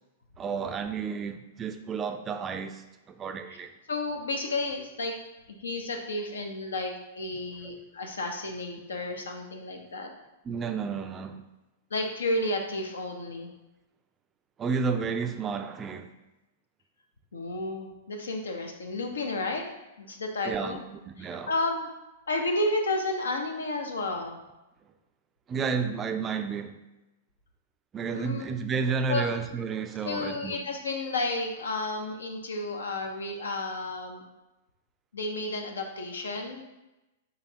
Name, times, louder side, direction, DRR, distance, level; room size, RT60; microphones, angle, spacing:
voice 1, 0.4-3.7 10.4-11.4 14.6-16.1 20.4-21.5 25.5-26.8 27.9-30.6, right 5 dB, 25° right, 7 dB, 0.3 m, -31 dB
voice 2, 3.9-5.1 5.5-10.1 11.9-13.5 17.3-19.6 20.0-20.8 21.2-21.9 22.3-24.4 28.1-28.5 29.1-29.3 30.0-34.2 35.1-36.6, left 2 dB, 80° left, 3 dB, 0.6 m, -32 dB
4.0 x 3.3 x 2.8 m, 1.0 s
hypercardioid pair, 110°, 0 cm